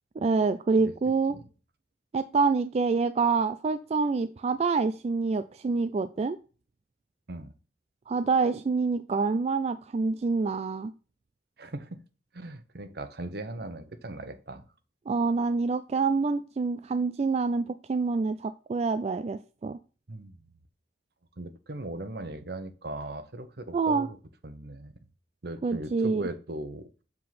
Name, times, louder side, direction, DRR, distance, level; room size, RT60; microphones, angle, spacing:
voice 1, 0.2-1.3 2.1-6.4 8.1-10.9 15.1-19.8 23.7-24.1 25.6-26.3, right 4 dB, 35° right, 10 dB, 0.3 m, -26 dB
voice 2, 11.6-12.0 12.3-14.6 20.1-20.4 21.4-24.2 24.4-24.9 25.4-26.9, right 2 dB, 65° right, 10 dB, 1.0 m, -38 dB
7.6 x 3.8 x 5.8 m, 0.36 s
head